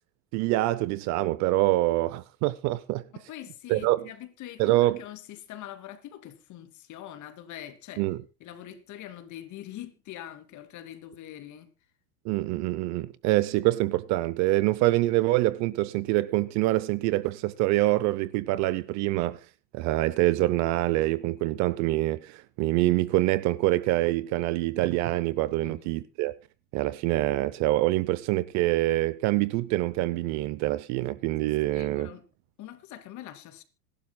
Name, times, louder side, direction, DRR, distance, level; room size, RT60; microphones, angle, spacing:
voice 1, 0.3-3.0 3.7-4.1 4.6-5.0 8.0-8.2 12.2-19.4 19.7-26.3 26.7-32.1, right 17 dB, 40° right, 0.6 m, -25 dB
voice 2, 3.1-8.0 8.4-11.7 25.6-25.9 31.7-32.2 32.6-33.6, left 12 dB, 40° left, 2.6 m, -43 dB
26.5 x 12.0 x 2.2 m
supercardioid pair, 135°, 47 cm